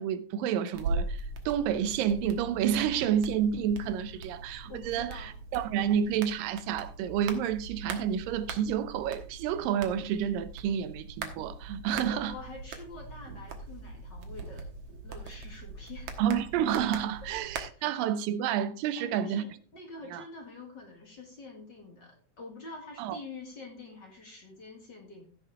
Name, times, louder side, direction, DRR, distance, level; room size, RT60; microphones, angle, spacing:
voice 1, 0.0-12.4 16.2-19.5 20.1-20.2 23.0-23.2, right 9 dB, 85° right, 2.5 m, -29 dB
sound 1, 0.7-17.6, right 3 dB, 65° right, 2.5 m, -41 dB
voice 2, 4.7-5.4 11.9-16.1 17.8-17.9 19.0-25.3, left 3 dB, 40° left, 2.0 m, -46 dB
15.5 x 6.3 x 3.4 m
omnidirectional pair, 3.9 m